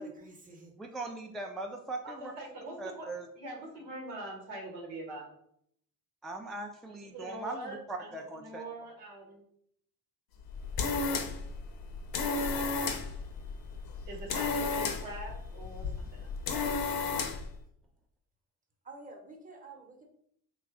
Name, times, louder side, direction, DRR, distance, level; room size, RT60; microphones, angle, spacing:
voice 1, 0.0-0.7 18.8-20.0, right 2 dB, 20° right, 2 dB, 1.0 m, -49 dB
voice 2, 0.8-2.3 2.8-3.3 6.2-8.6, right 2 dB, ahead, 3 dB, 0.3 m, -40 dB
voice 3, 2.0-3.1 3.4-5.3 7.1-8.1 8.4-9.4 14.1-16.3, right 1 dB, 85° right, -1 dB, 1.2 m, -43 dB
sound 1, 10.4-17.5, left 4 dB, 60° left, 0.6 m, -33 dB
3.1 x 2.3 x 3.7 m, 0.69 s
supercardioid pair, 60°, 41 cm